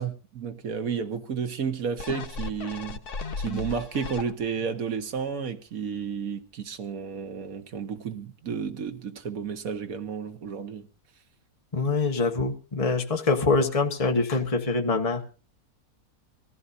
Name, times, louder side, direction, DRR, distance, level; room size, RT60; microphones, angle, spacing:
voice 1, 0.0-3.0 3.4-10.9, right 6 dB, 65° right, 1.7 m, -32 dB
sound 1, 2.0-4.7 5.2-5.3, left 4 dB, 85° left, 1.7 m, -35 dB
voice 2, 11.7-15.2, left 3 dB, 25° left, 1.4 m, -24 dB
24.5 x 15.5 x 2.6 m
omnidirectional pair, 1.6 m